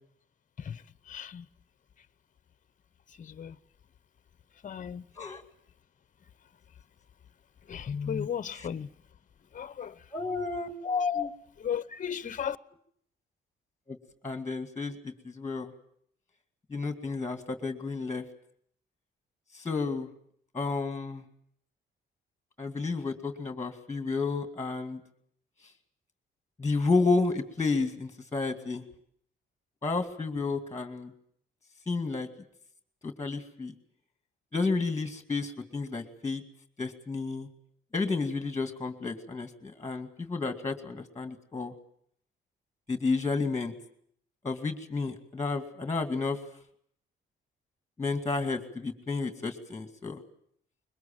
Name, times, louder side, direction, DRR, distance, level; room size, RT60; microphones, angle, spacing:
voice 1, 0.6-1.5 3.2-3.6 4.6-5.0 7.7-8.9 9.5-10.0 10.8-11.3 11.6-12.6, left 7 dB, 40° left, 0.9 m, -34 dB
voice 2, 10.1-10.7 11.2-11.3 13.9-14.0 14.2-15.7 16.7-18.2 19.5-20.1 20.5-21.2 22.6-25.0 26.6-28.8 29.8-31.1 31.9-32.3 33.0-33.7 34.5-36.4 36.8-37.5 37.9-41.7 42.9-43.7 44.4-46.4 48.0-50.2, left 3 dB, 15° left, 2.3 m, -31 dB
22.0 x 20.5 x 8.9 m
cardioid pair, 90°, 20 cm